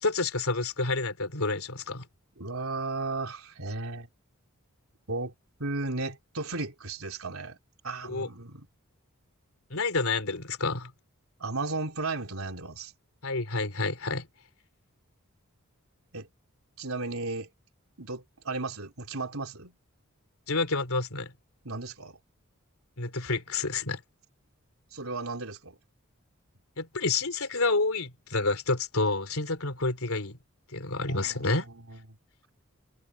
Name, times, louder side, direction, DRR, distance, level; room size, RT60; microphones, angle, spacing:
voice 1, 0.0-2.1 8.1-8.3 9.7-10.9 13.2-14.3 20.5-21.3 23.0-24.0 26.8-30.4 30.7-31.7, left 3 dB, 75° left, 3.2 m, -29 dB
voice 2, 2.4-4.1 5.1-5.3 5.6-7.6 7.8-8.7 11.4-12.9 16.1-16.3 16.8-17.5 18.0-19.8 21.6-22.2 24.9-25.8 31.1-32.0, right 3 dB, 75° right, 3.7 m, -35 dB
head